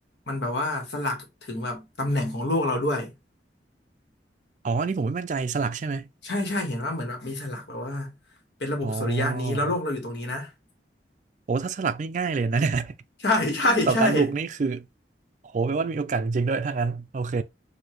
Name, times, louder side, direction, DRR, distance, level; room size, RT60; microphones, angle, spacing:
voice 1, 0.3-3.1 6.2-8.1 8.6-10.5 13.2-14.3, left 1 dB, 75° left, 1.4 m, -27 dB
voice 2, 4.6-6.1 8.8-9.7 11.5-12.9 13.9-14.9 15.5-17.4, right 4 dB, 45° right, 0.3 m, -26 dB
4.8 x 2.6 x 2.9 m
head